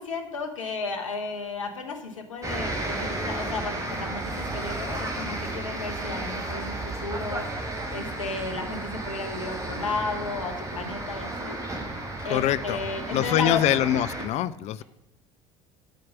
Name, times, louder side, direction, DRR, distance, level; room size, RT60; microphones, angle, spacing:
voice 1, 0.0-7.5 7.9-11.6 12.2-13.6, left 4 dB, 80° left, 5 dB, 1.0 m, -33 dB
sound 1, 2.4-14.3, right 2 dB, 20° right, 1.8 m, -33 dB
voice 2, 12.3-12.9 13.1-14.8, left 12 dB, 45° left, 16 dB, 0.4 m, -24 dB
9.1 x 4.6 x 6.0 m, 0.96 s
figure-of-eight pair, 65°, 16 cm